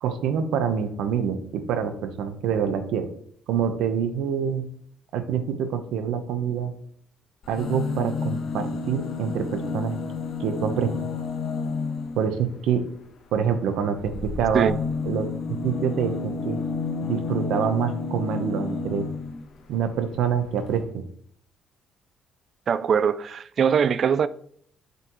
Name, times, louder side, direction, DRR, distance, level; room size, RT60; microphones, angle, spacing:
voice 1, 0.0-3.1 3.5-4.6 5.1-6.7 7.5-10.0 10.4-10.9 12.2-12.9 13.3-14.7 15.0-16.6 17.0-19.1 19.7-21.1, right 7 dB, 85° right, 1.0 m, -26 dB
sound 1, 7.4-12.3 14.0-19.4 20.4-20.5 20.7-20.8, left 4 dB, 55° left, 1.1 m, -30 dB
voice 2, 22.7-24.3, right 7 dB, 45° right, 0.4 m, -22 dB
7.0 x 6.7 x 3.1 m
cardioid pair, 130°, 0 cm